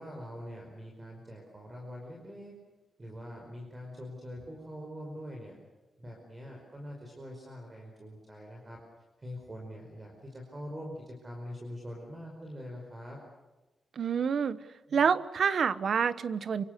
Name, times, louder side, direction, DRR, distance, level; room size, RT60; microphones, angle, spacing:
voice 1, 0.0-2.5 3.0-5.5 6.0-8.8 9.2-13.2, equal, 20° right, 0 dB, 5.2 m, -44 dB
voice 2, 14.0-14.6 14.9-16.6, right 6 dB, 55° right, 15 dB, 1.1 m, -27 dB
27.0 x 25.5 x 6.8 m, 1.1 s
wide cardioid pair, 160°, 0 cm